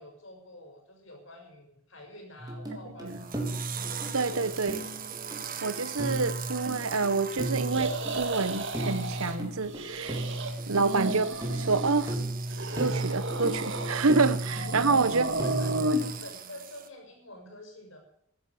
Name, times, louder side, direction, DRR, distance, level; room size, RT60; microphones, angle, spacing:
voice 1, 0.0-3.4 4.2-4.7 10.7-10.9 14.7-18.0, left 1 dB, 60° left, 5.8 m, -48 dB
sound 1, 2.4-16.2, right 1 dB, 20° right, 3.6 m, -35 dB
sound 2, 3.1-16.9, right 8 dB, 40° right, 1.2 m, -41 dB
voice 2, 4.1-4.8 5.6-10.2 10.7-12.2 12.8-15.4, right 4 dB, 75° right, 1.1 m, -27 dB
sound 3, 7.7-9.4 9.6-10.5 10.8-12.2 12.5-14.1 14.5-16.0, right 1 dB, 55° right, 2.0 m, -33 dB
13.5 x 10.5 x 7.8 m
head